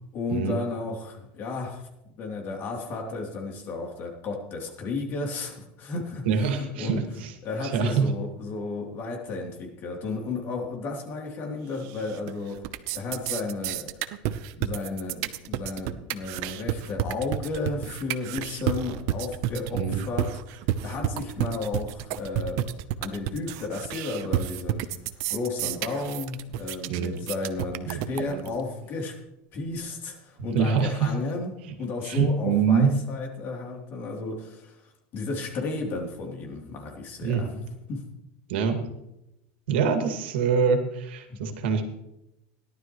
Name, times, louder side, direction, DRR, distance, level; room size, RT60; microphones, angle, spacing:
voice 1, 0.1-6.2 6.6-12.6 12.9-14.1 14.6-20.3 20.8-22.7 23.0-24.9 25.3-29.2 29.5-34.7 35.1-37.6 37.9-38.0 41.3-41.5, left 3 dB, 40° left, 0 dB, 3.2 m, -33 dB
voice 2, 6.3-7.3 7.6-8.1 19.7-20.0 26.9-27.2 27.9-28.4 30.5-31.1 32.0-32.9 37.2-37.5 38.5-38.8 39.7-41.9, right 6 dB, 85° right, 6 dB, 2.0 m, -25 dB
sound 1, 11.8-12.3 12.6-28.6, right 12 dB, 55° right, 0.8 m, -30 dB
17.5 x 12.0 x 3.1 m, 0.87 s
supercardioid pair, 145°, 6 cm